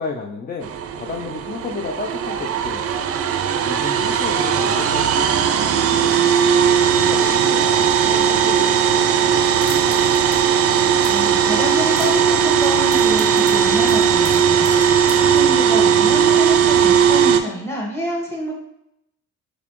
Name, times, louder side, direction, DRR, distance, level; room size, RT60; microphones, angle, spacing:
voice 1, 0.0-3.1 3.6-6.2 6.8-10.0 16.1-16.5, left 4 dB, 30° left, 1 dB, 0.5 m, -32 dB
sound 1, 0.6-17.4, right 7 dB, 50° right, 0.4 m, -17 dB
sound 2, 9.4-10.4 10.6-11.3 11.7-12.3 12.6-15.4, left 3 dB, 60° left, 0.9 m, -39 dB
voice 2, 11.0-14.7 15.2-18.5, equal, 10° left, -1 dB, 1.4 m, -27 dB
4.0 x 3.8 x 3.0 m, 0.82 s
cardioid pair, 90°, 30 cm